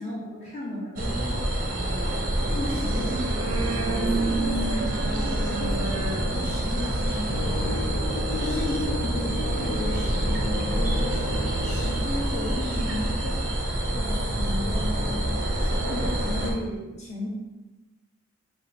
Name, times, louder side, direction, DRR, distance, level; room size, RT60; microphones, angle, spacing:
voice 1, 0.0-1.4 2.5-3.2 3.7-13.7 13.9-17.3, left 1 dB, 30° left, -6 dB, 1.3 m, -34 dB
sound 1, 1.0-16.5, right 1 dB, 40° right, 0.6 m, -27 dB
sound 2, 2.8-8.0, right 3 dB, 90° right, 0.5 m, -32 dB
sound 3, 7.3-13.3, left 1 dB, 60° left, 0.4 m, -34 dB
5.1 x 2.3 x 4.2 m, 1.1 s
head